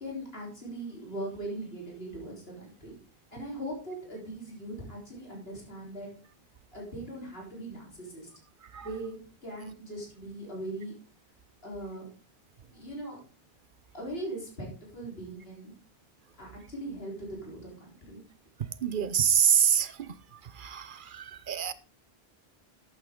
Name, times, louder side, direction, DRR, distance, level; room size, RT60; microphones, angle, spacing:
voice 1, 0.0-3.0 3.3-6.1 6.7-8.3 8.8-10.9 11.6-12.1 12.6-13.2 13.9-15.7 16.4-18.2, right 1 dB, 70° left, 4.1 m, -40 dB
voice 2, 18.8-20.1 20.6-21.7, right 8 dB, 55° right, 0.8 m, -26 dB
11.5 x 8.4 x 3.7 m
omnidirectional pair, 1.0 m